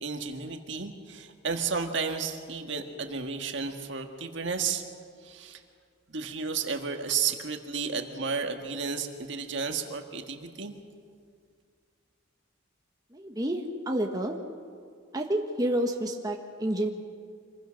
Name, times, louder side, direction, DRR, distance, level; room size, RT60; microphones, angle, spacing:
voice 1, 0.0-4.8 5.2-5.6 6.1-10.7, right 5 dB, 60° right, 5 dB, 1.7 m, -32 dB
voice 2, 13.1-14.4 15.1-16.9, right 1 dB, 20° right, 2 dB, 1.3 m, -29 dB
26.0 x 21.5 x 6.4 m, 2.2 s
head